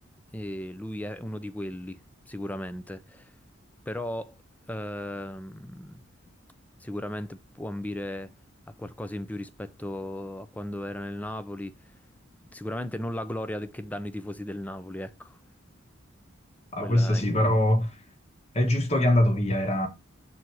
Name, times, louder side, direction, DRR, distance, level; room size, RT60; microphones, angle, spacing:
voice 1, 0.3-3.3 3.9-4.4 4.7-6.0 6.8-8.3 8.8-11.7 12.5-15.4 16.8-17.6, left 1 dB, 5° left, 0.5 m, -36 dB
voice 2, 16.7-17.9 18.5-19.9, left 1 dB, 30° left, 1.2 m, -23 dB
7.6 x 4.3 x 4.6 m
head